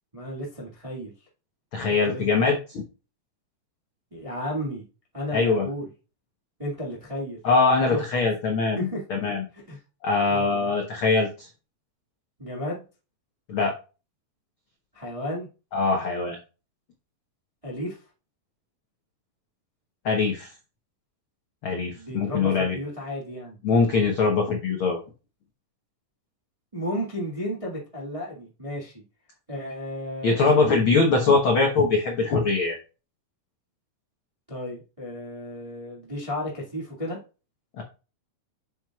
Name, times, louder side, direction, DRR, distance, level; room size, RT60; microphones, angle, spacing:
voice 1, 0.1-1.1 2.0-2.3 4.1-4.8 5.1-5.9 6.6-7.4 7.9-8.0 8.7-9.0 9.5-9.8 10.3-10.7 12.4-12.8 14.9-15.5 17.6-18.0 21.8-23.6 26.7-28.9 29.5-30.7 34.5-37.2, equal, 15° right, -4 dB, 1.1 m, -33 dB
voice 2, 1.7-2.8 5.3-5.7 7.4-9.4 10.0-11.5 13.5-13.7 15.7-16.4 20.0-20.5 21.6-22.8 23.6-25.0 30.2-32.8 37.8-37.9, left 4 dB, 70° left, 1 dB, 1.3 m, -22 dB
7.6 x 7.4 x 2.4 m, 0.32 s
omnidirectional pair, 4.0 m